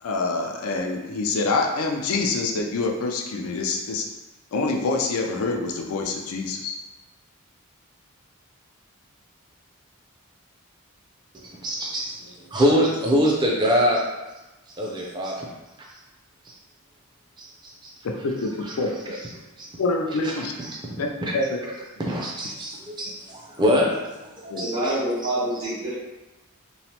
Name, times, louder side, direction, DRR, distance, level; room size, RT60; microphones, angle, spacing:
voice 1, 0.0-4.1 4.5-6.8 18.2-19.1 19.8-20.5 21.0-21.1 21.3-21.6 24.5-24.7, left 3 dB, 80° left, 2 dB, 0.4 m, -26 dB
voice 2, 11.3-14.0 14.8-15.5 16.5-16.6 17.4-17.9 18.6-18.7 19.1-19.2 19.6-19.7 20.2-20.3 20.6-20.7 21.2-21.3 21.6-21.7 22.1-23.9 24.2-25.0 25.2-25.3, equal, 20° right, -2 dB, 0.4 m, -24 dB
voice 3, 24.6-26.0, right 1 dB, 80° right, -10 dB, 1.1 m, -26 dB
3.0 x 2.0 x 2.8 m, 1.1 s
head